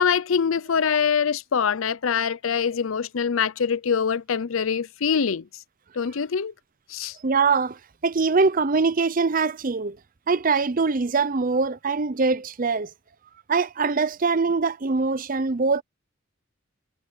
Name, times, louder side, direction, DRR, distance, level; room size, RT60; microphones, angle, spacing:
voice 1, 0.0-5.5 5.9-6.5 6.9-7.2, left 6 dB, 80° left, 0.6 m, -24 dB
voice 2, 7.2-10.0 10.3-12.9 13.5-15.8, right 4 dB, 40° right, 0.6 m, -23 dB
head